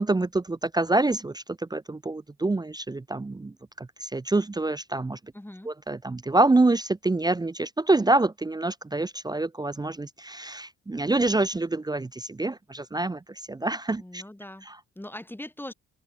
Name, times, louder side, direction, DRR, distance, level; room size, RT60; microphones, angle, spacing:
voice 1, 0.0-5.2 5.7-13.2 13.5-14.2 14.7-14.8, right 2 dB, 15° right, 0.6 m, -26 dB
voice 2, 5.3-5.7 14.0-14.7 15.0-15.7, left 1 dB, 5° left, 6.0 m, -40 dB
open air
cardioid pair, 90°, 30 cm